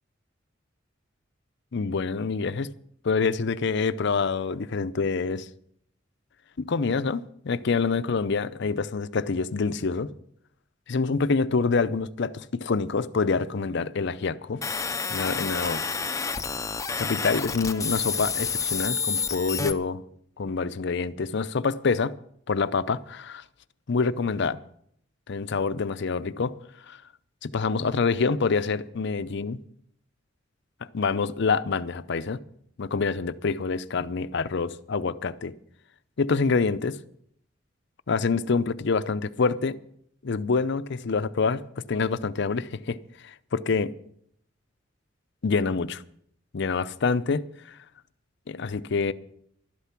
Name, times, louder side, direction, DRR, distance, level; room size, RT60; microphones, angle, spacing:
voice 1, 1.7-2.7 3.0-5.5 6.6-10.1 10.9-14.6 15.1-15.8 17.0-20.0 20.4-22.1 22.5-23.4 23.9-24.6 25.3-26.6 26.9-27.0 27.4-29.6 30.8-32.4 32.8-35.5 36.2-37.0 38.1-39.8 40.2-41.6 41.9-43.0 43.2-43.9 45.4-46.0 46.5-47.8 48.5-49.1, left 4 dB, 65° left, 0.6 m, -26 dB
sound 1, 14.6-19.7, left 5 dB, 15° left, 0.6 m, -29 dB
12.5 x 11.5 x 5.9 m
head